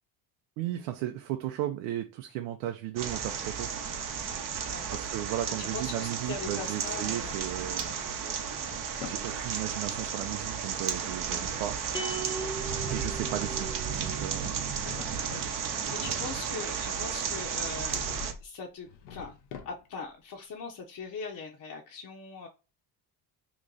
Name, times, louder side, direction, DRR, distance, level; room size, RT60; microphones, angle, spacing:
voice 1, 0.6-3.7 4.9-7.9 9.1-11.8 12.9-13.7 14.0-14.7, right 13 dB, 80° right, 0.6 m, -35 dB
sound 1, 3.0-18.3, right 7 dB, 45° right, 0.8 m, -33 dB
voice 2, 4.7-5.0 5.3-7.3 12.8-13.0 15.6-18.1 18.4-19.3 19.6-22.5, left 5 dB, 40° left, 0.8 m, -41 dB
Drawer open or close, 6.8-7.8 8.3-9.3 12.9-14.1 14.5-15.6 17.8-18.5 18.8-20.1, left 6 dB, 80° left, 0.9 m, -46 dB
sound 2, 11.9-14.4, right 3 dB, 10° left, 0.5 m, -38 dB
3.0 x 2.5 x 3.8 m
supercardioid pair, 80°, 47 cm